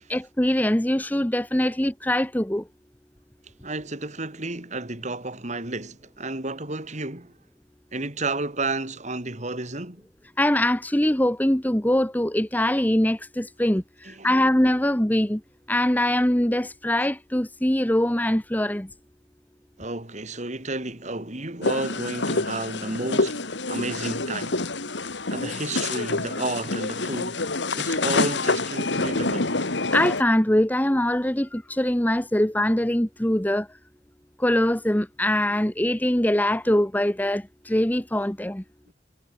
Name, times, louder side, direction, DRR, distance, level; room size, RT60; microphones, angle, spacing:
voice 1, 0.1-2.7 10.4-15.4 15.7-18.9 29.9-33.7 34.4-38.6, left 1 dB, 10° left, 1.0 m, -23 dB
voice 2, 3.6-7.4 7.9-10.0 14.0-14.3 19.8-24.6 24.9-27.5 27.7-29.6 38.9-39.0, right 2 dB, 40° right, 3.2 m, -32 dB
sound 1, 21.6-30.2, left 3 dB, 70° left, 2.3 m, -27 dB
head